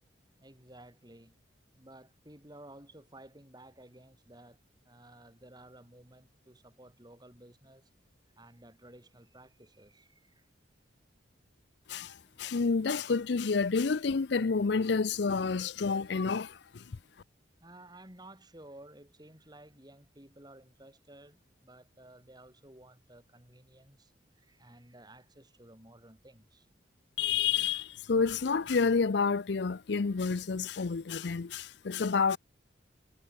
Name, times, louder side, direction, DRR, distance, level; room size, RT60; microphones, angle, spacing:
voice 1, 0.4-1.4 1.8-7.9 8.4-10.5 17.6-26.7, right 1 dB, 20° right, 3.9 m, -54 dB
voice 2, 11.9-17.0 27.2-32.4, left 5 dB, 60° left, 0.5 m, -29 dB
head